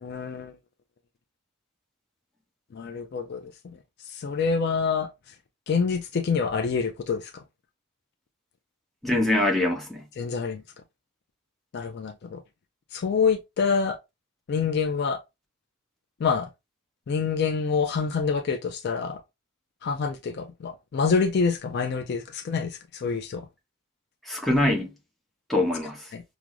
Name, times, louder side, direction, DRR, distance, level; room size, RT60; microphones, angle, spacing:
voice 1, 0.0-0.5 2.7-5.4 5.7-7.4 10.2-10.6 11.7-12.4 12.9-14.0 14.5-15.2 16.2-16.5 17.1-19.2 19.8-23.5 26.1-26.2, left 5 dB, 45° left, 0.3 m, -27 dB
voice 2, 9.0-10.0 24.2-24.9 25.5-26.1, left 1 dB, ahead, 0.9 m, -24 dB
5.9 x 2.0 x 2.4 m
head